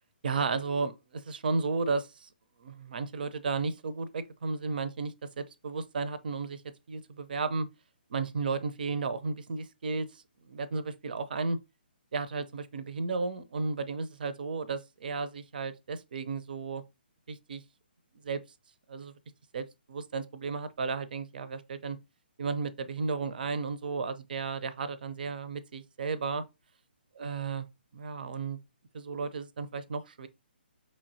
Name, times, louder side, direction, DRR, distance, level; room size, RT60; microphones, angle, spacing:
voice 1, 0.2-2.3 2.6-6.6 6.9-7.7 8.1-11.6 12.1-16.8 17.3-17.6 18.2-18.4 18.9-19.1 19.5-22.0 22.4-26.4 27.2-27.7 27.9-28.6 28.9-30.3, right 4 dB, 55° right, 0.6 m, -33 dB
5.3 x 3.1 x 2.6 m
figure-of-eight pair, 135°, 6 cm